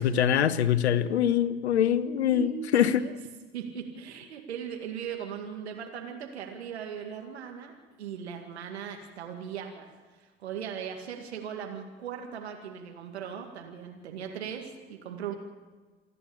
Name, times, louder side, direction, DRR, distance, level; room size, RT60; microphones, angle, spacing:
voice 1, 0.0-3.1, left 9 dB, 85° left, 15 dB, 1.0 m, -24 dB
voice 2, 2.3-3.1 3.5-15.3, right 8 dB, 85° right, 3 dB, 2.3 m, -39 dB
28.0 x 11.0 x 8.6 m, 1.4 s
hypercardioid pair, 70°, 32 cm